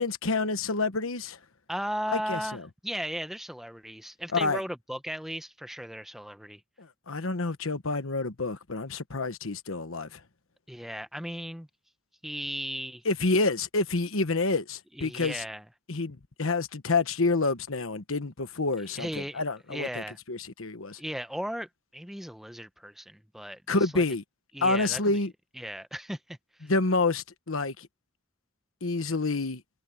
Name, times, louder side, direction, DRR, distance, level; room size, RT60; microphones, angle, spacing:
voice 1, 0.0-1.4 2.1-2.6 4.3-4.6 6.8-10.2 13.0-15.4 15.9-21.0 23.7-24.2 24.6-25.3 26.6-27.9 28.8-29.6, left 3 dB, 70° left, 1.2 m, -28 dB
voice 2, 1.7-6.6 10.7-11.7 12.2-13.0 15.0-15.6 18.9-19.4 19.7-20.2 21.0-24.0 24.5-25.2 25.6-26.7, equal, ahead, 0.7 m, -36 dB
head